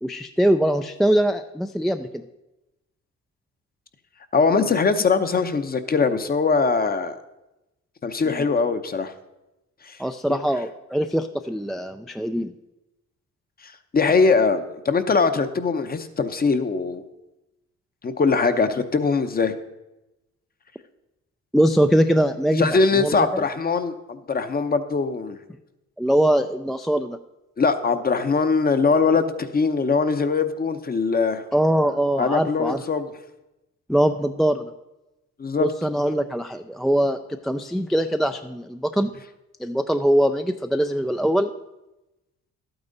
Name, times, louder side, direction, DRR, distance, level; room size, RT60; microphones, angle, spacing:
voice 1, 0.0-2.1 8.3-8.4 10.0-12.5 21.5-23.2 26.0-27.2 31.5-32.8 33.9-34.7 35.6-39.1 39.6-41.5, equal, ahead, 7 dB, 0.3 m, -22 dB
voice 2, 4.3-7.2 8.0-9.1 9.8-10.0 10.3-10.4 13.6-17.0 18.0-19.5 22.6-25.4 27.6-31.4 32.2-33.1 35.4-35.7, left 4 dB, 30° left, 10 dB, 0.8 m, -21 dB
12.0 x 8.8 x 4.0 m, 0.98 s
cardioid pair, 90°, 30 cm